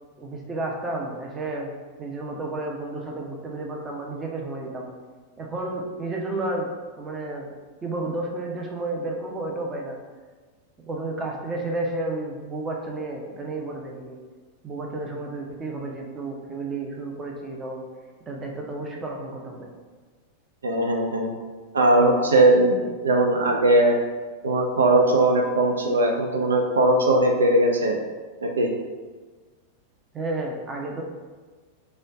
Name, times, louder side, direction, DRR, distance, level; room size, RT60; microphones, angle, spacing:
voice 1, 0.2-1.7 2.0-4.9 5.4-6.7 7.0-7.5 7.8-10.0 10.8-14.2 14.6-17.8 18.3-19.7 30.1-31.0, right 2 dB, 20° right, 0 dB, 0.6 m, -31 dB
voice 2, 20.6-21.3 21.7-24.0 24.4-28.0 28.4-28.7, right 1 dB, 70° right, 1 dB, 0.3 m, -19 dB
3.2 x 2.3 x 4.1 m, 1.4 s
figure-of-eight pair, 90°, 0 cm